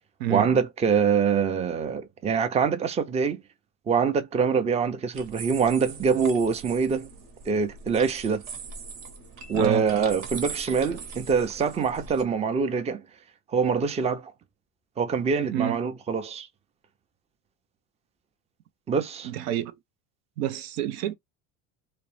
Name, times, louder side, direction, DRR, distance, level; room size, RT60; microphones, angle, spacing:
voice 1, 0.3-3.4 3.9-7.1 7.5-8.4 9.5-13.0 13.5-14.3 15.0-16.5 18.9-19.3, right 6 dB, 15° right, 0.4 m, -24 dB
sound 1, 5.1-12.2, right 5 dB, 50° right, 0.9 m, -41 dB
voice 2, 9.5-9.8 15.5-15.8 19.2-19.7 20.4-21.2, right 12 dB, 90° right, 0.5 m, -28 dB
2.5 x 2.0 x 3.1 m
supercardioid pair, 95°, 40 cm